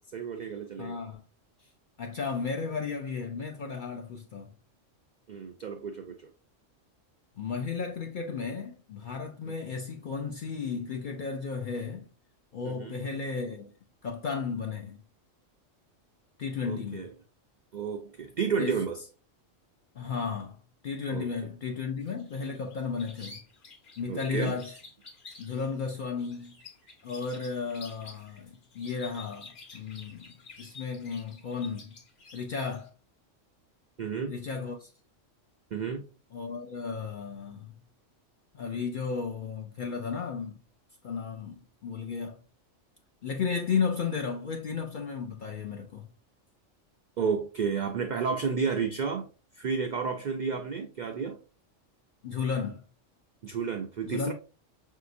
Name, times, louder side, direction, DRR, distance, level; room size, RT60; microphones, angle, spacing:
voice 1, 0.1-1.0 5.3-6.3 9.5-9.6 12.6-13.0 16.6-17.1 17.7-19.1 21.1-21.3 24.1-24.6 34.0-34.3 35.7-36.0 47.2-49.3 49.5-51.4 53.4-54.3, right 5 dB, 75° right, 0.4 m, -31 dB
voice 2, 0.8-1.2 2.0-4.5 7.4-12.0 12.5-13.7 14.0-15.0 16.4-17.1 18.6-18.8 20.0-20.6 20.8-23.4 24.0-24.7 25.4-26.6 27.0-30.3 30.6-31.9 32.3-32.9 34.3-34.9 36.3-37.7 38.5-40.6 41.0-42.4 43.2-46.1 52.2-52.8 54.0-54.3, left 5 dB, 60° left, 0.5 m, -34 dB
sound 1, 22.0-32.9, left 4 dB, 45° left, 1.0 m, -51 dB
5.7 x 2.8 x 2.5 m
omnidirectional pair, 1.3 m